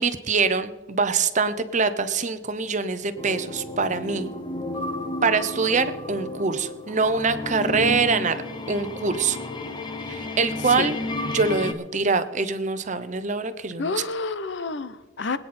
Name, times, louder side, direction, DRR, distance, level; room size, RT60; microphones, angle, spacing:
voice 1, 0.0-4.3 5.2-8.4 8.7-9.4 10.0-11.0 11.3-14.0, right 4 dB, 35° right, 11 dB, 0.8 m, -24 dB
sound 1, 3.2-11.7, left 2 dB, 20° left, 0.9 m, -32 dB
voice 2, 13.8-15.4, left 3 dB, 60° left, 15 dB, 0.8 m, -29 dB
24.0 x 9.2 x 4.3 m, 1.3 s
head